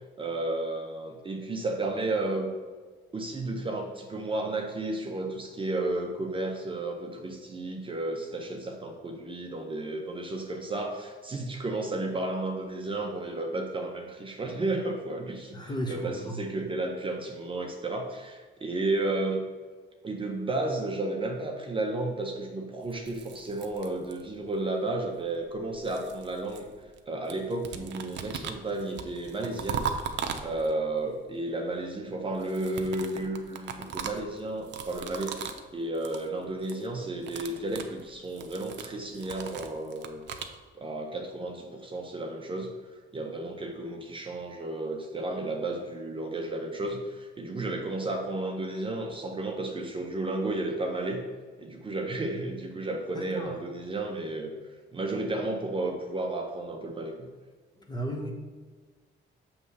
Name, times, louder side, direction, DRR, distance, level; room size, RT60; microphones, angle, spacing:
voice 1, 0.2-2.5 3.1-15.6 15.9-19.4 20.0-26.7 27.1-29.9 30.4-35.3 35.7-40.2 40.7-42.7 43.1-51.3 51.6-54.5 54.9-57.3, right 2 dB, 25° right, 1 dB, 0.6 m, -32 dB
voice 2, 15.5-16.4 53.1-53.5 57.8-58.3, equal, 20° left, 1 dB, 1.0 m, -35 dB
sound 1, 22.9-24.5 25.4-27.0 27.3-30.9 32.3-35.7 35.9-36.3 36.5-36.9 37.1-40.6, right 7 dB, 60° right, 0.6 m, -38 dB
6.9 x 3.1 x 5.5 m, 1.4 s
cardioid pair, 125°, 20 cm